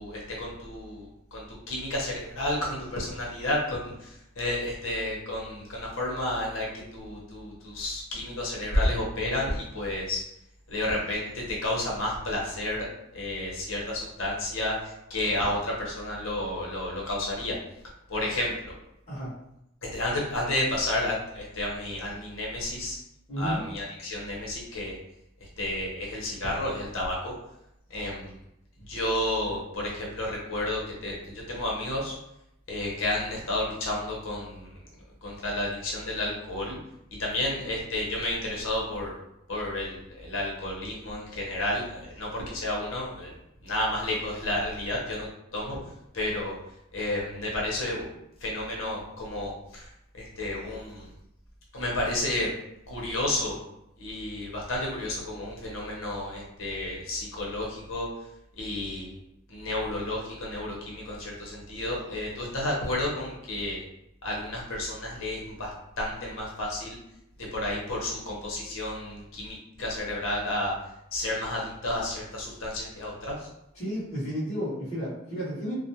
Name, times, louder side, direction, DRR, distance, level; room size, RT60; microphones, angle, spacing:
voice 1, 0.0-10.2 10.7-12.9 13.1-17.5 18.1-18.7 19.9-23.0 23.4-25.0 25.6-27.3 27.9-28.3 28.9-32.1 32.7-34.7 35.2-36.8 37.1-39.1 39.5-43.4 43.6-45.3 45.5-45.8 46.1-46.5 46.9-48.1 48.4-49.9 50.2-51.1 51.7-52.5 52.9-53.6 54.0-58.1 58.6-59.2 59.5-63.8 64.2-65.7 66.0-67.0 67.4-70.7 71.1-73.3, left 1 dB, 70° left, -3 dB, 0.9 m, -31 dB
voice 2, 23.3-23.6 73.7-75.7, equal, 35° left, -11 dB, 1.0 m, -32 dB
2.4 x 2.1 x 2.8 m, 0.81 s
head